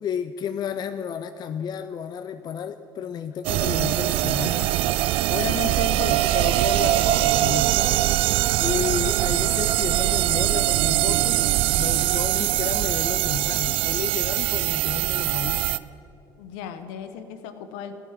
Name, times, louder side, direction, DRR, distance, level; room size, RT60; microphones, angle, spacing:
voice 1, 0.0-4.8 5.3-8.0 8.6-15.6, left 8 dB, 40° left, 11 dB, 0.5 m, -32 dB
sound 1, 3.4-15.8, right 15 dB, 55° right, 0.4 m, -22 dB
voice 2, 16.4-17.9, left 8 dB, 65° left, 10 dB, 1.0 m, -37 dB
14.5 x 5.8 x 9.6 m, 2.7 s
hypercardioid pair, 65°, 11 cm